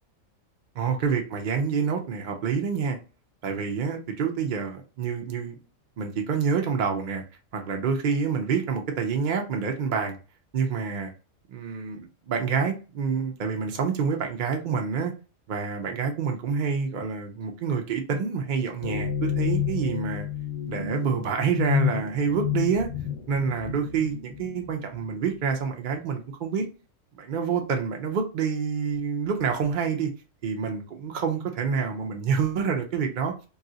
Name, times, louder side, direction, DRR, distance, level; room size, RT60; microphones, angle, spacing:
voice 1, 0.7-3.0 3.4-5.5 6.0-7.2 7.5-10.2 10.5-11.1 11.5-15.1 15.5-20.3 20.7-22.9 23.3-26.7 27.1-30.1 30.4-33.3, right 6 dB, 55° right, 0.5 m, -27 dB
sound 1, 18.8-25.4, left 10 dB, 55° left, 0.7 m, -30 dB
2.6 x 2.3 x 3.8 m
omnidirectional pair, 1.3 m